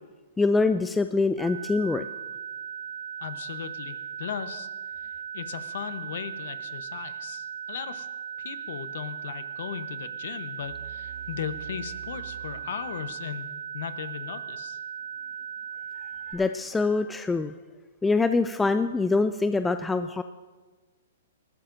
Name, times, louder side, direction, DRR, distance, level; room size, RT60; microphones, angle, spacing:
voice 1, 0.4-2.1 16.3-17.5 18.0-20.2, left 3 dB, 10° left, 10 dB, 0.3 m, -24 dB
sound 1, 1.4-16.3, right 8 dB, 55° right, 3.2 m, -38 dB
voice 2, 3.2-4.7 5.0-5.1 5.3-8.1 8.4-14.8, left 8 dB, 65° left, 12 dB, 0.9 m, -37 dB
sound 2, 10.6-13.6, right 11 dB, 75° right, 2.2 m, -46 dB
20.5 x 13.5 x 2.6 m, 1.4 s
hypercardioid pair, 135°, 0 cm